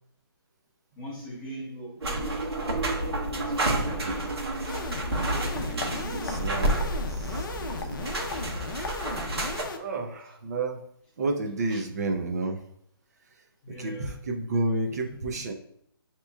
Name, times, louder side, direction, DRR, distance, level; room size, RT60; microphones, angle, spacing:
voice 1, 1.0-2.4 3.3-4.3 5.8-6.4 8.0-8.1 11.7-11.8 13.6-14.1, equal, 10° left, -3 dB, 0.7 m, -41 dB
sound 1, 2.0-9.6, right 2 dB, 85° right, 1.2 m, -30 dB
sound 2, 2.7-9.2, left 3 dB, 25° right, 0.8 m, -44 dB
voice 2, 3.8-4.2 5.8-8.4 9.7-10.8 11.2-12.6 13.8-15.5, right 2 dB, 40° right, 2 dB, 0.5 m, -31 dB
sound 3, 4.7-9.8, left 3 dB, 55° left, 0.6 m, -36 dB
6.6 x 2.9 x 2.3 m, 0.71 s
hypercardioid pair, 165°, 13 cm